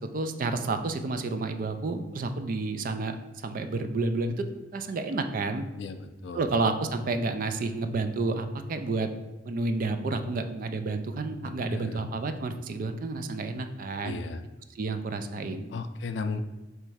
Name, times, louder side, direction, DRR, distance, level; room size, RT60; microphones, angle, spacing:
voice 1, 0.1-4.3 4.7-5.7 6.3-9.1 9.5-14.2 14.8-15.7, right 3 dB, 50° right, 8 dB, 0.3 m, -30 dB
voice 2, 5.8-6.4 11.4-12.1 14.0-14.4 15.7-16.4, left 4 dB, 70° left, 9 dB, 0.4 m, -36 dB
3.3 x 3.0 x 4.8 m, 1.1 s
head